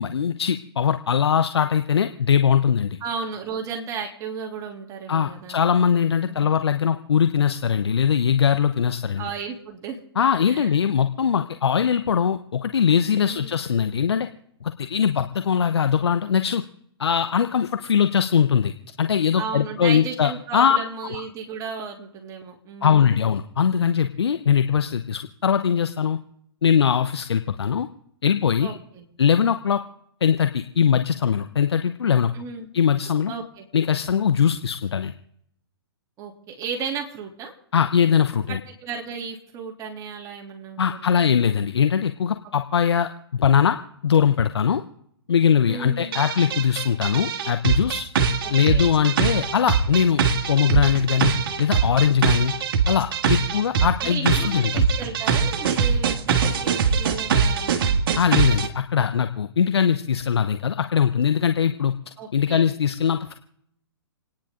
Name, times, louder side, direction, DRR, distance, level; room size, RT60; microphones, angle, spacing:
voice 1, 0.0-3.0 5.1-9.2 10.2-14.3 14.6-16.6 17.0-18.7 19.0-20.8 21.1-21.2 22.8-26.2 26.6-27.9 28.2-28.8 29.2-29.8 30.2-32.3 32.7-33.3 33.7-35.1 37.7-38.6 40.8-43.8 44.0-44.8 45.3-48.1 48.5-50.2 50.5-52.5 52.9-54.9 58.2-61.9 62.3-63.3, left 7 dB, 70° left, 8 dB, 0.9 m, -21 dB
voice 2, 3.0-5.6 6.2-6.5 9.2-10.0 10.5-10.7 13.1-13.5 19.4-23.2 28.6-29.1 32.3-32.7 33.3-33.7 36.2-37.5 38.5-41.2 45.7-46.1 48.2-49.4 53.4-53.5 53.8-58.0 62.2-62.7, right 5 dB, 25° right, 0 dB, 3.1 m, -34 dB
sound 1, 46.1-58.7, right 6 dB, 55° right, 1.8 m, -22 dB
28.5 x 10.0 x 3.8 m, 0.71 s
figure-of-eight pair, 125°, 14 cm